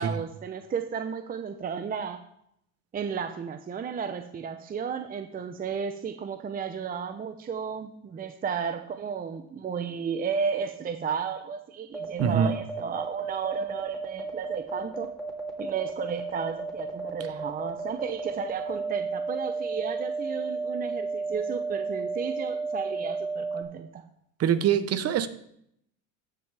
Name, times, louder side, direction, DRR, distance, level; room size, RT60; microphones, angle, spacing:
voice 1, 0.0-2.2 2.9-15.1 15.6-24.0, right 6 dB, 25° right, 7 dB, 0.7 m, -33 dB
sound 1, 11.9-23.6, right 4 dB, ahead, 2.9 m, -33 dB
voice 2, 12.2-12.5 24.4-25.3, right 8 dB, 40° right, 12 dB, 1.0 m, -23 dB
14.5 x 6.3 x 3.4 m, 0.72 s
supercardioid pair, 110°, 36 cm